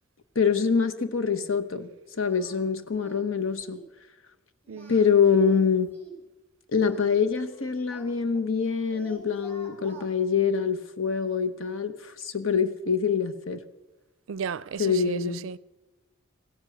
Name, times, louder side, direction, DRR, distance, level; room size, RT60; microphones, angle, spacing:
voice 1, 0.3-3.8 4.9-5.9 6.7-13.6 14.8-15.4, left 6 dB, 75° left, 1.0 m, -25 dB
Singing, 2.3-2.6 2.9-3.3 3.6-3.9 4.6-6.2 6.9-8.6 8.9-10.1, right 2 dB, 10° left, 3.2 m, -49 dB
voice 2, 14.3-15.6, right 6 dB, 70° right, 0.4 m, -34 dB
16.0 x 12.5 x 6.5 m
head